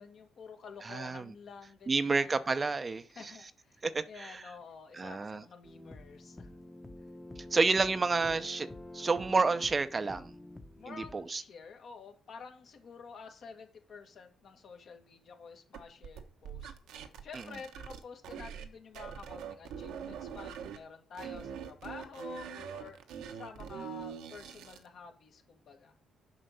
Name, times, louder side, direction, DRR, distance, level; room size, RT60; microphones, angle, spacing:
voice 1, 0.0-2.5 3.2-6.6 10.8-16.7 17.2-23.0 23.3-25.9, left 5 dB, 60° left, 1.9 m, -50 dB
voice 2, 0.8-1.3 1.9-3.3 3.8-4.4 4.9-5.4 7.5-8.7 8.9-10.3 10.9-11.4, right 4 dB, 30° right, 0.6 m, -30 dB
sound 1, 5.6-11.2, left 1 dB, 10° left, 1.0 m, -48 dB
sound 2, 15.7-18.7 18.9-20.8 21.1-24.9, right 8 dB, 90° right, 1.1 m, -43 dB
7.6 x 5.2 x 6.8 m
cardioid pair, 90°, 0 cm